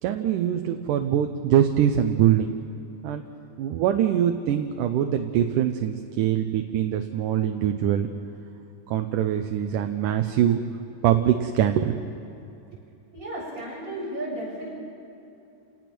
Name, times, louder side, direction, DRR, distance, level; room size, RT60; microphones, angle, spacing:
voice 1, 0.0-2.5 3.0-3.2 3.6-8.1 8.9-10.6 11.0-12.0, right 10 dB, 90° right, 6 dB, 2.4 m, -23 dB
voice 2, 13.1-14.7, right 1 dB, 25° right, -5 dB, 8.0 m, -33 dB
30.0 x 18.5 x 6.1 m, 2.8 s
omnidirectional pair, 3.6 m